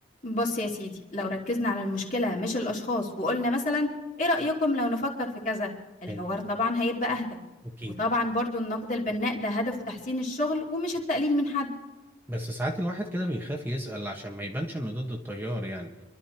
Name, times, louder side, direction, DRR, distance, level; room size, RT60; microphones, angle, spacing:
voice 1, 0.2-3.9 4.2-5.7 6.0-7.4 8.0-11.7, left 2 dB, 40° left, -2 dB, 2.9 m, -28 dB
voice 2, 12.3-15.9, equal, 10° right, 0 dB, 1.3 m, -32 dB
27.0 x 12.5 x 2.9 m, 1.1 s
head